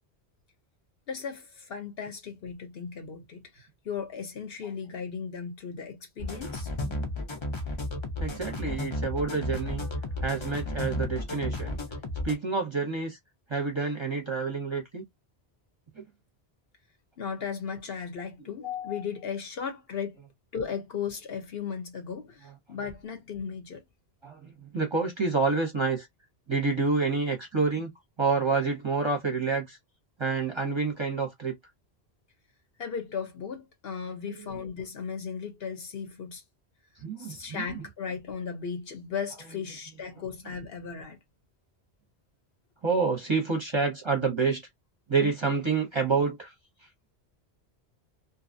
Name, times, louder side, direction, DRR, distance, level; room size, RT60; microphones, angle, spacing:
voice 1, 1.1-6.9 17.2-20.2 20.5-23.8 32.8-36.4 37.2-41.2, left 6 dB, 65° left, 1.0 m, -36 dB
sound 1, 6.2-12.3, left 1 dB, 35° left, 0.6 m, -33 dB
voice 2, 8.2-9.8 10.2-11.8 12.2-13.2 13.5-15.0 16.0-16.1 24.2-26.1 26.5-27.9 28.2-29.8 30.2-31.5 37.0-37.8 42.8-44.6 45.1-46.5, right 4 dB, 30° right, 0.7 m, -28 dB
2.7 x 2.3 x 2.5 m
omnidirectional pair, 1.1 m